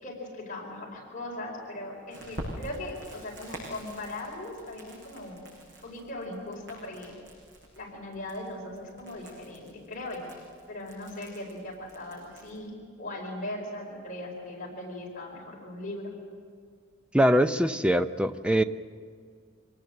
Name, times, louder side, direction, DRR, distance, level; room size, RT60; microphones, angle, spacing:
voice 1, 0.0-5.4 5.8-7.2 7.7-10.3 10.7-12.7 13.0-16.1, left 1 dB, 40° left, -1 dB, 4.6 m, -39 dB
Crackle, 2.1-12.6, equal, 60° right, 7.6 m, -46 dB
voice 2, 17.1-18.6, equal, 5° right, 9 dB, 0.5 m, -23 dB
25.5 x 18.5 x 7.7 m, 2.1 s
head